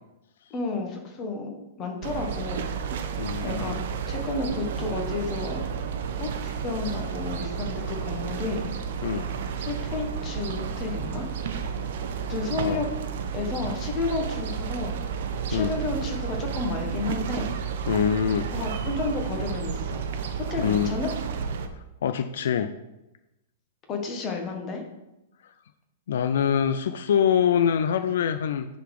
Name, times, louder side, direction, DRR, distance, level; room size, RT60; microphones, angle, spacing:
voice 1, 0.5-2.6 3.4-3.8 4.1-5.6 6.2-8.7 9.6-11.3 12.3-12.9 13.3-14.9 15.5-17.5 18.5-20.0 20.5-21.1 23.9-24.8, left 3 dB, 20° left, 2 dB, 1.1 m, -31 dB
sound 1, 2.0-21.7, right 7 dB, 55° right, 0.7 m, -31 dB
voice 2, 3.2-3.8 9.0-9.3 12.6-12.8 15.5-15.7 17.9-18.5 20.6-21.0 22.0-22.7 26.1-28.7, left 8 dB, 70° left, 11 dB, 0.4 m, -24 dB
9.9 x 4.1 x 4.8 m, 0.95 s
supercardioid pair, 165°, 0 cm